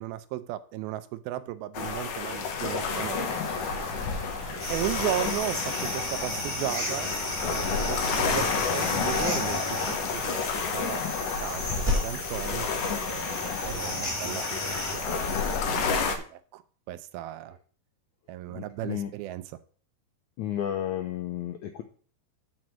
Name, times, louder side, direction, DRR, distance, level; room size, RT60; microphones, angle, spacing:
voice 1, 0.0-3.3 4.7-7.1 7.4-11.0 11.4-15.3 15.6-16.6 16.9-17.6 18.3-19.4, right 14 dB, 85° right, 13 dB, 2.5 m, -36 dB
sound 1, 1.7-16.2, left 5 dB, 65° left, 2.5 m, -30 dB
sound 2, 2.6-8.3, right 4 dB, 50° right, 2.3 m, -44 dB
sound 3, 4.6-15.6, left 1 dB, 5° left, 2.3 m, -34 dB
voice 2, 18.5-19.1 20.4-21.8, left 11 dB, 80° left, 6 dB, 1.7 m, -32 dB
7.8 x 5.2 x 7.3 m, 0.43 s
omnidirectional pair, 4.3 m